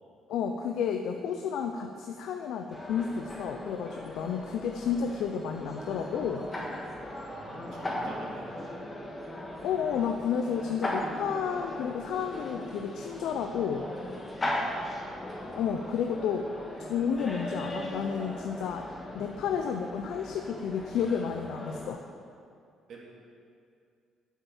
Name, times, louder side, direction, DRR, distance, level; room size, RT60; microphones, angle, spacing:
voice 1, 0.3-6.5 9.6-13.9 15.5-16.5 16.8-18.9 19.1-22.0, left 7 dB, 75° left, 5 dB, 0.6 m, -31 dB
sound 1, 2.7-21.9, left 1 dB, 15° left, 1.6 m, -38 dB
voice 2, 7.3-8.8 14.6-14.9 22.9-23.1, right 3 dB, 60° right, -3 dB, 2.7 m, -47 dB
9.1 x 8.2 x 7.2 m, 2.4 s
cardioid pair, 145°, 0 cm